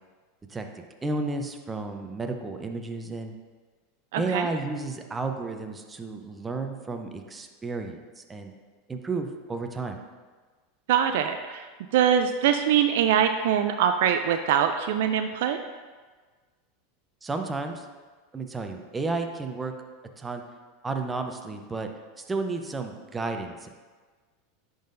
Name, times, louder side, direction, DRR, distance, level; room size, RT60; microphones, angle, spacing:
voice 1, 1.0-3.3 4.2-8.5 8.9-10.0 17.2-17.9 18.3-19.7 20.2-20.4 20.8-21.9 22.2-23.7, right 3 dB, 15° right, 5 dB, 0.7 m, -32 dB
voice 2, 4.1-4.5 10.9-11.7 11.9-15.6, right 9 dB, 70° right, 7 dB, 0.3 m, -23 dB
10.0 x 3.9 x 2.6 m, 1.4 s
hypercardioid pair, 95°, 0 cm